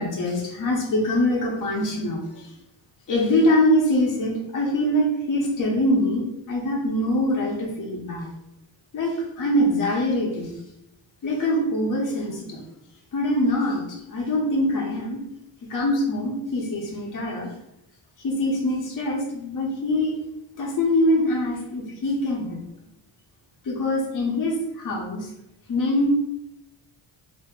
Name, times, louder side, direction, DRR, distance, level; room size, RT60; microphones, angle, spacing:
voice 1, 0.0-2.5 3.1-8.3 8.9-10.5 11.2-12.6 13.1-15.2 15.7-17.5 18.2-20.1 20.6-22.6 23.6-25.3 25.7-26.1, left 1 dB, 40° left, -3 dB, 0.8 m, -24 dB
2.1 x 2.1 x 3.5 m, 0.85 s
cardioid pair, 100°, 49 cm